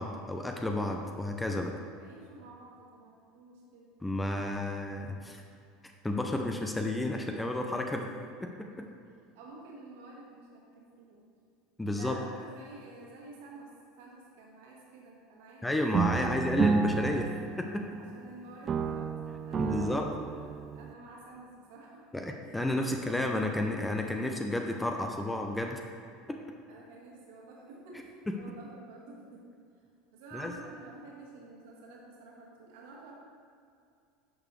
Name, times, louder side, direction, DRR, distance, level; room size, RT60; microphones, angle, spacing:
voice 1, 0.0-1.7 4.0-5.4 6.0-8.1 8.4-8.9 11.8-12.2 15.6-17.3 17.6-17.9 19.6-20.2 22.1-25.8 26.3-26.4 30.3-30.5, left 1 dB, 10° left, 3 dB, 0.7 m, -31 dB
voice 2, 1.9-3.9 8.6-8.8 9.3-11.2 11.9-13.7 14.0-16.7 18.0-19.2 19.4-22.0 22.4-23.4 26.7-29.4 30.1-33.1, right 2 dB, 60° right, -3 dB, 2.0 m, -51 dB
sound 1, 15.9-18.3 18.7-20.9, right 5 dB, 30° right, 0.4 m, -31 dB
11.0 x 6.8 x 3.2 m, 2.3 s
figure-of-eight pair, 75°, 0 cm